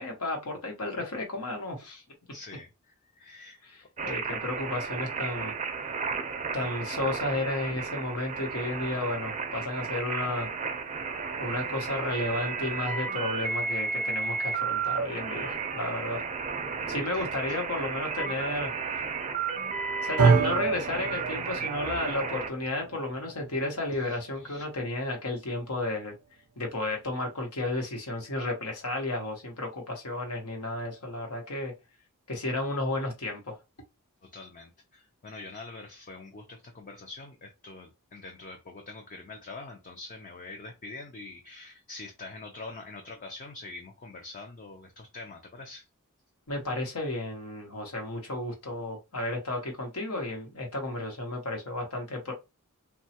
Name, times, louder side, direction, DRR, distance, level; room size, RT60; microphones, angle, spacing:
voice 1, 0.0-2.0 3.6-5.5 6.5-10.5 11.4-16.2 16.9-18.7 20.0-26.1 26.6-31.7 32.3-33.6 46.5-52.3, left 2 dB, 80° left, 1.1 m, -33 dB
voice 2, 2.3-3.6 4.0-4.1 17.1-17.6 23.9-24.6 34.2-45.8, left 3 dB, 35° left, 0.5 m, -45 dB
sound 1, 4.0-22.5, right 5 dB, 35° right, 0.4 m, -33 dB
sound 2, 20.2-28.4, right 4 dB, 85° right, 0.5 m, -31 dB
3.0 x 2.3 x 2.8 m
head